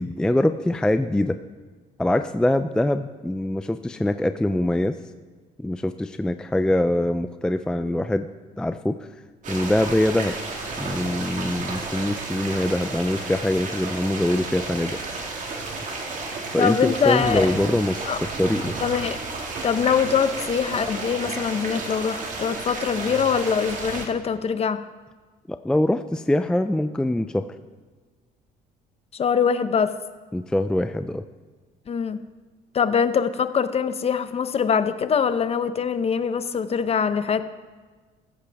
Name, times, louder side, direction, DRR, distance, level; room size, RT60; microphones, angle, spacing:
voice 1, 0.0-1.4 2.0-5.0 5.6-8.3 8.6-9.1 9.5-10.4 10.8-15.0 16.5-18.8 25.5-27.5 30.3-31.2, left 1 dB, 5° left, 9 dB, 0.4 m, -23 dB
sound 1, 9.4-24.1, right 3 dB, 50° right, 2.1 m, -32 dB
voice 2, 16.6-17.5 18.1-18.2 18.8-19.2 19.6-24.8 29.1-29.9 31.9-32.2 32.7-37.4, left 6 dB, 35° left, 12 dB, 0.8 m, -23 dB
15.0 x 13.5 x 3.5 m, 1.4 s
cardioid pair, 110°, 17 cm